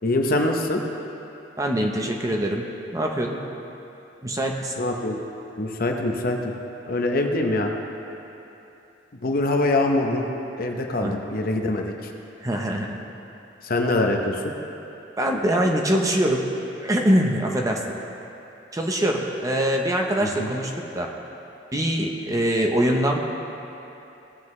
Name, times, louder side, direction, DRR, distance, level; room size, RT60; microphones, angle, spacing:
voice 1, 0.0-0.8 4.8-5.2 5.6-6.5 6.9-7.7 9.2-10.3 10.6-12.1 13.6-14.5 20.2-20.6, left 2 dB, 50° left, 3 dB, 0.8 m, -24 dB
voice 2, 1.6-2.7 2.9-3.4 4.2-4.7 11.0-11.2 12.4-13.0 15.2-16.5 16.8-17.8 18.7-21.1 21.7-23.2, right 1 dB, 20° right, 1 dB, 0.7 m, -23 dB
17.0 x 7.7 x 3.2 m, 2.9 s
head